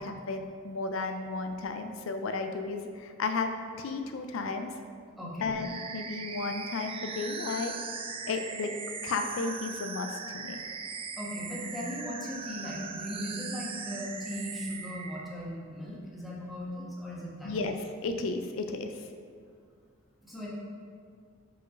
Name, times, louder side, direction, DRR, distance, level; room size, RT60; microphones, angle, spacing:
voice 1, 0.0-3.5 3.8-4.7 5.4-7.7 8.3-8.7 9.0-10.6 17.4-17.7 18.0-19.1, left 3 dB, 75° left, 6 dB, 0.4 m, -33 dB
voice 2, 5.2-5.5 11.2-17.5 20.2-20.5, equal, ahead, -7 dB, 1.4 m, -38 dB
sound 1, 5.6-15.2, right 5 dB, 30° right, 0.4 m, -39 dB
5.1 x 4.6 x 5.1 m, 2.1 s
head